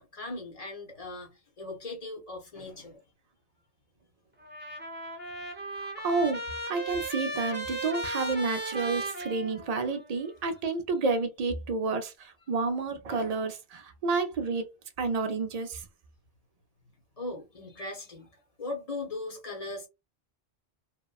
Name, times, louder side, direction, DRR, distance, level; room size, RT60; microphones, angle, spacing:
voice 1, 0.0-3.0 17.2-19.9, left 2 dB, 40° left, 0.8 m, -39 dB
Trumpet, 4.4-10.0, right 1 dB, 10° right, 0.6 m, -36 dB
voice 2, 5.8-14.7 15.0-15.9, right 4 dB, 55° right, 0.4 m, -30 dB
2.9 x 2.1 x 2.3 m
omnidirectional pair, 1.1 m